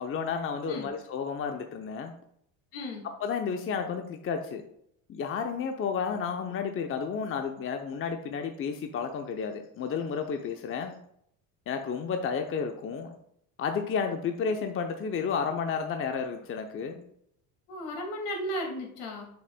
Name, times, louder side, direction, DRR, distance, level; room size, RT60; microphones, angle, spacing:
voice 1, 0.0-2.1 3.2-4.6 5.1-11.0 11.7-13.2 13.6-17.0, left 6 dB, 30° left, 5 dB, 0.7 m, -32 dB
voice 2, 2.7-3.1 17.7-19.3, equal, 70° left, 1 dB, 2.3 m, -35 dB
6.7 x 6.6 x 2.2 m, 0.71 s
supercardioid pair, 100°, 41 cm